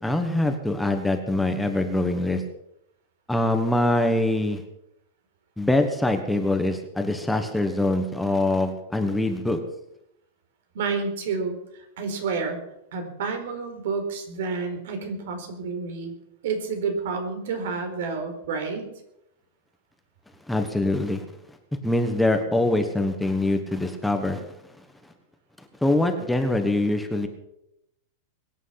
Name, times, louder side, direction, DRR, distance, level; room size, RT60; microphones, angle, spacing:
voice 1, 0.0-2.4 3.3-4.6 5.6-9.6 20.5-21.2 21.8-24.4 25.8-27.3, left 2 dB, 5° left, 5 dB, 1.3 m, -24 dB
voice 2, 10.7-12.6 12.9-16.1 16.4-18.9, right 4 dB, 75° right, 6 dB, 4.4 m, -29 dB
22.5 x 9.4 x 5.9 m, 0.82 s
supercardioid pair, 160°, 0 cm